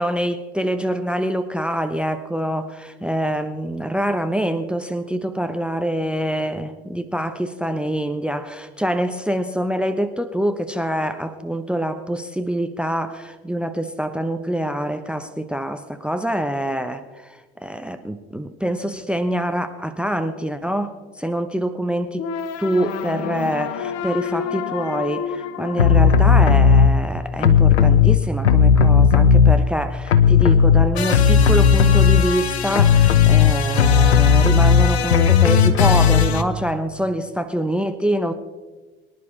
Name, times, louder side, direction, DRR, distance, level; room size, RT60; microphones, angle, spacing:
voice 1, 0.0-22.2 22.6-38.3, equal, 5° right, 10 dB, 0.8 m, -25 dB
sound 1, 22.2-27.2, left 7 dB, 55° left, 1.0 m, -30 dB
sound 2, 25.8-26.9 27.4-29.8 30.1-36.4, left 7 dB, 85° left, 0.9 m, -14 dB
23.5 x 11.0 x 3.3 m, 1.3 s
hypercardioid pair, 70°, 32 cm